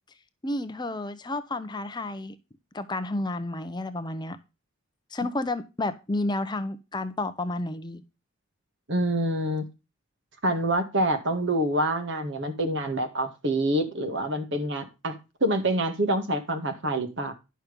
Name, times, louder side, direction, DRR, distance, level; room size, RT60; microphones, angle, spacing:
voice 1, 0.4-2.4 2.7-4.4 5.1-8.0, left 2 dB, 20° left, 0.7 m, -31 dB
voice 2, 8.9-9.7 10.4-17.3, right 1 dB, 55° right, 2.0 m, -26 dB
10.5 x 6.2 x 5.1 m
head